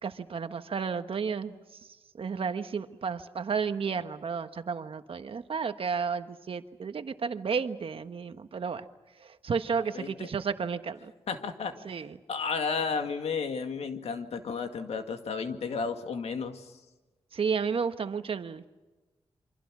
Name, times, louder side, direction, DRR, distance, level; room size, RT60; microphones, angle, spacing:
voice 1, 0.0-8.9 9.2-11.1 11.8-12.2 17.3-18.6, right 6 dB, 60° right, 9 dB, 1.4 m, -32 dB
voice 2, 9.9-10.3 11.3-11.7 12.3-16.6, left 5 dB, 85° left, 6 dB, 2.1 m, -32 dB
28.5 x 25.5 x 6.2 m, 1.2 s
cardioid pair, 90°, 10 cm